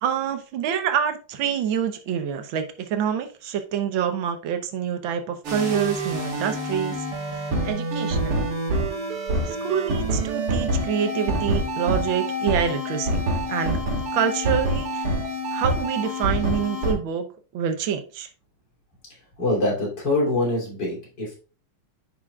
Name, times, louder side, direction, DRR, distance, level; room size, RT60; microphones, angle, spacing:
voice 1, 0.0-7.0 7.3-8.4 9.4-13.8 14.1-15.1 15.5-17.3 17.5-18.3, right 8 dB, 70° right, 1.7 m, -26 dB
sound 1, 5.4-16.9, right 1 dB, 85° right, 2.9 m, -26 dB
voice 2, 19.4-21.3, left 2 dB, 55° left, 3.7 m, -24 dB
10.5 x 5.0 x 2.3 m
omnidirectional pair, 2.4 m